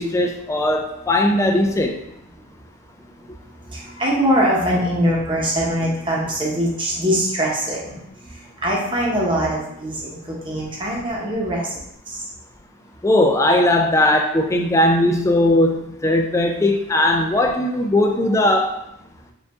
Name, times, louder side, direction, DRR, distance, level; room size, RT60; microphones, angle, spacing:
voice 1, 0.0-2.0 13.0-18.7, left 1 dB, 15° left, 4 dB, 0.3 m, -18 dB
voice 2, 3.4-11.7 12.1-12.2 17.2-17.4, equal, 20° right, -3 dB, 0.9 m, -23 dB
5.0 x 2.5 x 3.5 m, 0.79 s
head